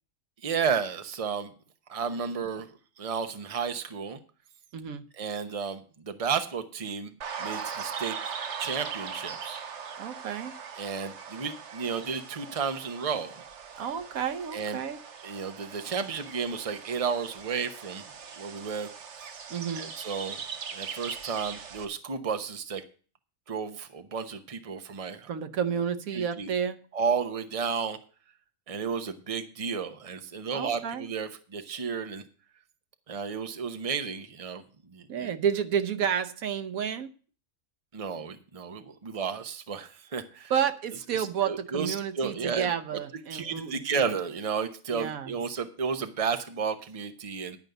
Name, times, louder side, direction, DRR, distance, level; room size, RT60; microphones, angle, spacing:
voice 1, 0.4-1.5 1.9-2.7 3.0-4.2 5.2-7.1 7.4-8.2 8.6-9.6 10.8-13.4 14.5-14.8 15.2-18.1 18.4-18.9 19.7-20.4 20.7-22.8 23.5-25.3 26.1-26.5 26.9-28.0 28.7-32.2 33.1-34.6 34.9-35.3 37.9-40.5 41.1-42.7 43.3-47.6, right 6 dB, 30° right, 8 dB, 0.9 m, -32 dB
voice 2, 4.7-5.1 10.0-10.5 13.8-15.0 19.5-19.9 25.3-26.8 30.5-31.0 35.1-37.1 40.5-43.8 44.9-45.3, right 8 dB, 80° right, 10 dB, 1.3 m, -30 dB
sound 1, 7.2-21.9, right 6 dB, 60° right, 1.2 m, -40 dB
11.0 x 5.3 x 7.9 m, 0.39 s
omnidirectional pair, 1.4 m